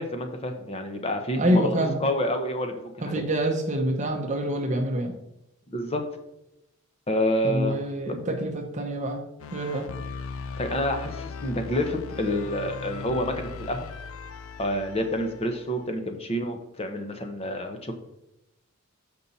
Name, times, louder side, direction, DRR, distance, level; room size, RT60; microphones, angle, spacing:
voice 1, 0.0-1.7 2.0-3.3 5.7-6.0 7.1-7.8 8.1-8.2 10.6-13.9 14.6-17.9, left 1 dB, 30° left, 5 dB, 0.9 m, -28 dB
voice 2, 1.4-2.0 3.0-5.1 7.4-9.2 9.5-9.9, right 1 dB, 35° right, 3 dB, 0.8 m, -26 dB
sound 1, 9.4-15.8, left 5 dB, 70° left, 0.4 m, -38 dB
7.4 x 5.4 x 4.1 m, 0.86 s
head